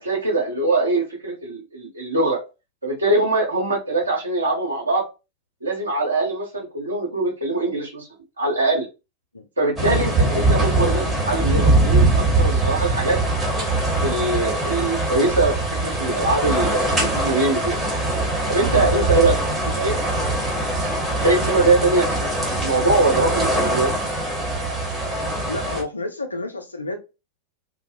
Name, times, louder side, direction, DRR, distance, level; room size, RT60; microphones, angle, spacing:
voice 1, 0.0-2.4 2.8-5.0 5.6-8.1 8.4-8.9 9.6-13.2 14.0-17.8 18.5-19.3 19.8-19.9 21.2-22.0 22.5-23.9, right 2 dB, 80° right, 0.7 m, -22 dB
sound 1, 9.8-25.8, right 2 dB, 10° right, 1.0 m, -22 dB
voice 2, 18.7-19.4 19.6-19.7 22.0-22.1 25.4-27.0, left 3 dB, 80° left, 0.5 m, -29 dB
2.5 x 2.0 x 2.5 m
figure-of-eight pair, 90°, 0 cm